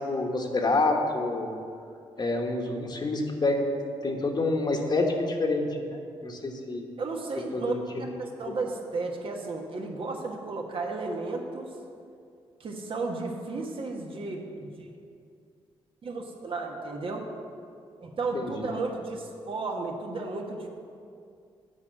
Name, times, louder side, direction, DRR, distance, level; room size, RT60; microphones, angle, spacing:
voice 1, 0.1-1.5 2.2-3.7 4.0-6.9 7.5-8.1 18.3-18.7, left 2 dB, 40° left, 2 dB, 1.3 m, -28 dB
voice 2, 7.0-7.8 8.2-11.7 12.6-14.9 16.0-17.2 18.0-20.7, right 3 dB, 55° right, 2 dB, 1.3 m, -33 dB
8.8 x 4.7 x 7.6 m, 2.4 s
cardioid pair, 60°, 11 cm